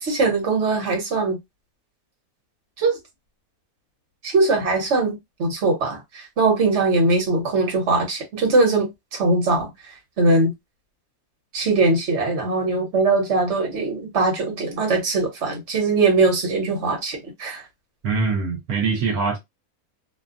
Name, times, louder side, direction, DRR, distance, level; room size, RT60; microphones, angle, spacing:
voice 1, 0.0-1.4 2.8-3.0 4.2-9.7 10.2-10.5 11.5-17.6, right 3 dB, 50° right, 1.4 m, -21 dB
voice 2, 18.0-19.4, right 4 dB, 80° right, 1.3 m, -23 dB
2.9 x 2.3 x 2.4 m
omnidirectional pair, 1.6 m